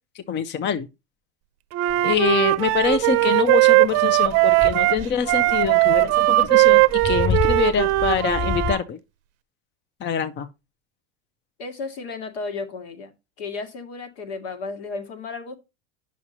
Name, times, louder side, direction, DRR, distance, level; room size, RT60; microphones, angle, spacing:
voice 1, 0.1-0.9 2.0-9.0 10.0-10.5, left 8 dB, 30° left, 0.8 m, -25 dB
Wind instrument woodwind instrument, 1.7-8.8, right 20 dB, 45° right, 0.6 m, -19 dB
sound 1, 1.9-8.7, left 6 dB, 10° left, 0.4 m, -30 dB
voice 2, 11.6-13.1 13.4-15.6, left 4 dB, 70° left, 2.1 m, -33 dB
9.5 x 6.2 x 2.8 m
hypercardioid pair, 95°, 34 cm